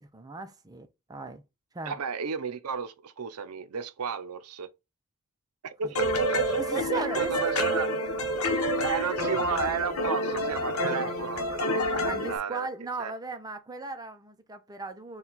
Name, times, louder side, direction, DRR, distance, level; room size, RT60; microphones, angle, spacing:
voice 1, 0.0-1.4 1.7-2.0 5.8-5.9 6.5-7.4 12.0-15.2, right 3 dB, 15° right, 0.4 m, -37 dB
voice 2, 1.9-4.7 5.6-7.9 8.8-12.7 13.0-13.1, right 6 dB, 75° right, 0.6 m, -33 dB
sound 1, 5.9-12.4, equal, 70° left, 0.9 m, -28 dB
4.3 x 2.3 x 3.9 m
head